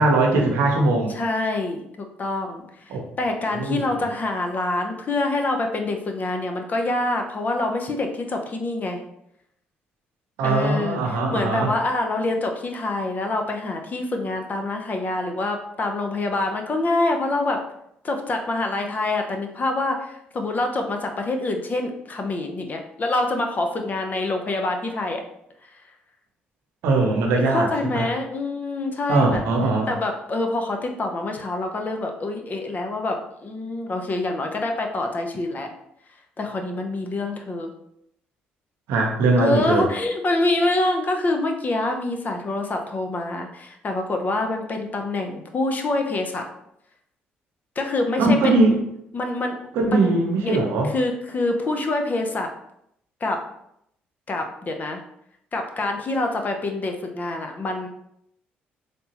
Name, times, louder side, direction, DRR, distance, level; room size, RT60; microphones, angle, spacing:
voice 1, 0.0-1.1 2.9-3.0 3.5-4.0 10.4-11.7 26.8-28.1 29.1-29.9 38.9-39.9 48.2-48.8 49.7-50.9, right 2 dB, 80° right, 0 dB, 0.7 m, -20 dB
voice 2, 1.1-9.0 10.4-17.6 18.0-25.2 27.5-29.4 29.9-35.7 36.4-37.7 39.4-46.4 47.8-48.6 49.1-50.1 50.4-50.6 50.8-52.5 53.2-53.4 54.3-55.0 55.5-57.9, left 2 dB, 40° left, 4 dB, 0.6 m, -26 dB
3.4 x 2.8 x 2.8 m, 0.75 s
supercardioid pair, 60°, 4 cm